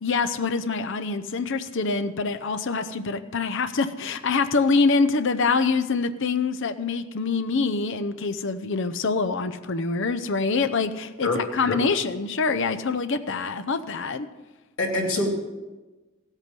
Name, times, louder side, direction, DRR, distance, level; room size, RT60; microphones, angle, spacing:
voice 1, 0.0-14.3, left 4 dB, 55° left, 9 dB, 0.7 m, -25 dB
voice 2, 11.2-11.8 14.8-15.3, left 2 dB, 75° left, -2 dB, 2.9 m, -25 dB
16.0 x 8.2 x 5.3 m, 1.2 s
head